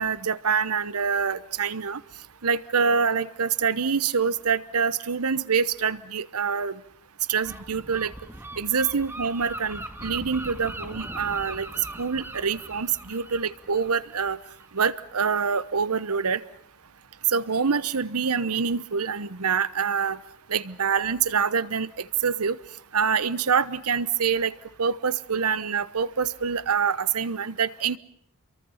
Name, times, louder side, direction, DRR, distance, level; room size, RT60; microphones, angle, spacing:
voice 1, 0.0-2.0 2.4-6.8 7.3-8.1 8.6-11.7 12.0-14.4 14.7-16.4 17.3-20.2 20.5-22.6 22.9-24.5 24.8-28.0, right 6 dB, 75° right, 16 dB, 1.0 m, -25 dB
Gull seagull, 7.4-14.9, right 1 dB, 10° right, 1.8 m, -40 dB
28.5 x 23.5 x 5.7 m, 0.65 s
head